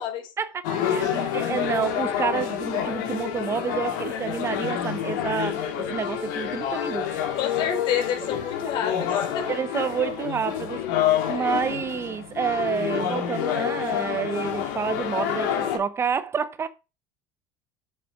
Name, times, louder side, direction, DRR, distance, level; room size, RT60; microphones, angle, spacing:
voice 1, 0.4-7.2 9.5-10.8 11.3-16.7, right 6 dB, 25° right, 0.8 m, -29 dB
sound 1, 0.6-15.8, left 9 dB, 85° left, 3.0 m, -28 dB
voice 2, 7.3-9.5 11.3-11.6, left 8 dB, 55° left, 3.9 m, -29 dB
8.0 x 7.4 x 4.7 m
supercardioid pair, 125°, 10 cm